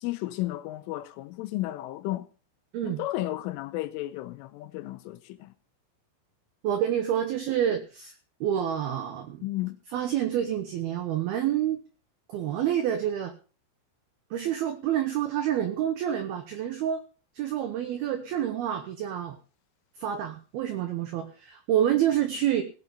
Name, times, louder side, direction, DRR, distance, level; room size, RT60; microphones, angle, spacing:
voice 1, 0.0-2.3 2.8-5.5 9.4-9.8, left 16 dB, 85° left, 3.3 m, -33 dB
voice 2, 6.6-8.1 8.4-9.4 9.9-11.8 12.3-13.3 14.3-17.0 17.4-19.4 20.0-22.6, right 10 dB, 75° right, 2.3 m, -28 dB
17.5 x 7.3 x 5.4 m
omnidirectional pair, 5.8 m